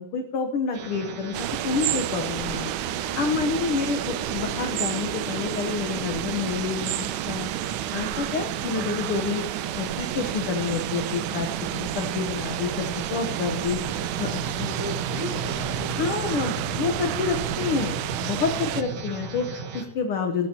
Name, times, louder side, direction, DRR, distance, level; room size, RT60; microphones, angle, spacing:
voice 1, 0.0-7.5 7.9-9.4 9.7-13.8 14.2-14.7 15.9-20.5, left 5 dB, 65° left, 4 dB, 1.5 m, -28 dB
sound 1, 0.7-19.8, right 5 dB, 50° right, 2.1 m, -34 dB
sound 2, 1.3-18.8, right 14 dB, 90° right, 2.1 m, -31 dB
voice 2, 13.7-14.1 14.4-16.3 18.7-18.9, equal, 5° right, -4 dB, 4.4 m, -37 dB
19.5 x 12.5 x 2.9 m, 1.0 s
omnidirectional pair, 3.5 m